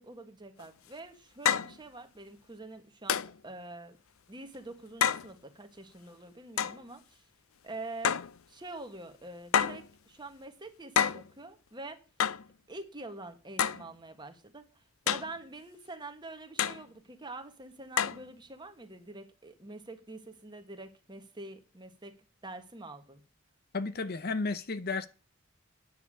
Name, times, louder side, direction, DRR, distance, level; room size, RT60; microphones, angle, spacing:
voice 1, 0.0-4.0 4.3-7.2 7.6-8.2 8.5-12.0 12.7-14.6 15.1-22.1 22.4-23.2, right 2 dB, 20° right, 1.6 m, -45 dB
sound 1, 0.6-0.7 1.5-1.8 3.1-3.4 5.0-5.3 6.6-6.8 8.0-8.4 9.5-9.9 11.0-11.3 12.2-12.5 13.6-13.9 15.1-15.4 16.6-16.8 18.0-18.2, left 8 dB, 85° left, 0.6 m, -28 dB
voice 2, 23.7-25.1, left 3 dB, 50° left, 0.8 m, -33 dB
9.6 x 6.9 x 8.6 m
head